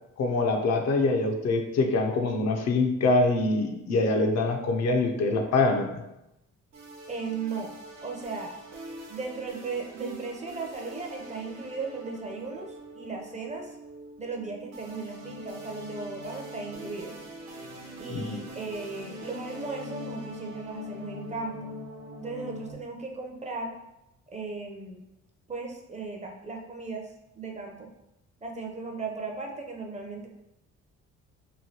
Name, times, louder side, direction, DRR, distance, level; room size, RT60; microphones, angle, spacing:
voice 1, 0.2-6.0 18.1-18.4, left 2 dB, 60° left, 3 dB, 0.5 m, -24 dB
sound 1, 6.7-22.7, equal, 60° right, 0.7 m, -43 dB
voice 2, 7.1-7.7 8.0-8.5 9.1-13.8 14.2-17.1 18.0-21.5 22.2-23.7 24.3-25.0 25.5-27.9 28.4-30.3, right 4 dB, 25° right, 1 dB, 0.5 m, -36 dB
3.1 x 2.6 x 2.7 m, 0.90 s
cardioid pair, 90°, 30 cm